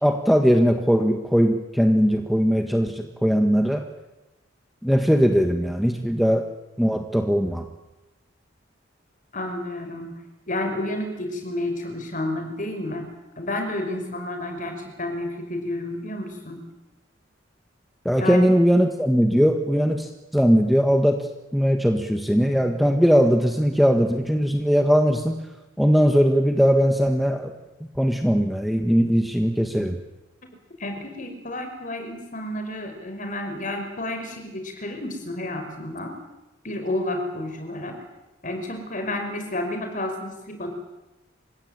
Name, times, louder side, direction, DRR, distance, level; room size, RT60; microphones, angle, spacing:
voice 1, 0.0-3.8 4.8-6.4 6.8-7.6 18.0-20.1 20.3-21.2 21.5-25.4 25.8-27.5 28.0-30.0, equal, ahead, 5 dB, 1.6 m, -20 dB
voice 2, 9.3-10.2 10.5-16.7 18.1-18.5 30.8-36.2 36.6-38.0 38.4-40.7, left 1 dB, 40° left, 5 dB, 5.4 m, -30 dB
28.0 x 16.5 x 9.0 m, 0.98 s
head